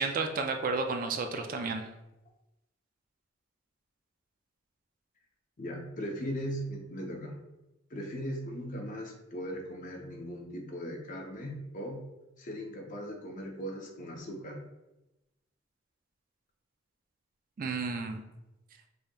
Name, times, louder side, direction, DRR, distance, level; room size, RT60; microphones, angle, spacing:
voice 1, 0.0-1.9 17.6-18.2, right 4 dB, 45° right, 5 dB, 0.4 m, -32 dB
voice 2, 5.6-7.4 7.9-12.0 12.4-14.7, equal, 45° left, 2 dB, 0.7 m, -38 dB
5.0 x 2.8 x 2.3 m, 0.96 s
head